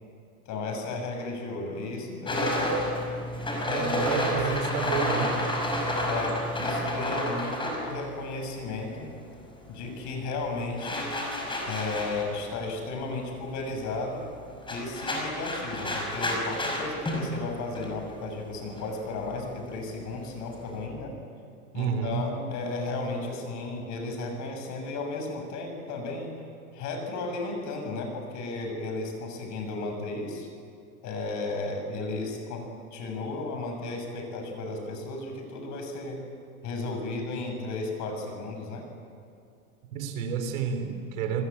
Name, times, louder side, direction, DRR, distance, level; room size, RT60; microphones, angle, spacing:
voice 1, 0.5-2.6 3.7-4.8 6.1-9.1 9.7-11.2 11.7-14.3 14.7-21.1 21.7-26.3 26.7-30.5 31.0-36.2 36.6-38.8, left 3 dB, 40° left, 4 dB, 7.1 m, -34 dB
sound 1, 2.3-9.0 9.2-20.8, left 1 dB, 10° left, 5.7 m, -31 dB
voice 2, 3.7-5.4 21.7-22.3 39.9-41.4, right 7 dB, 70° right, 6 dB, 4.4 m, -30 dB
28.5 x 21.0 x 8.8 m, 2.5 s
supercardioid pair, 125°, 42 cm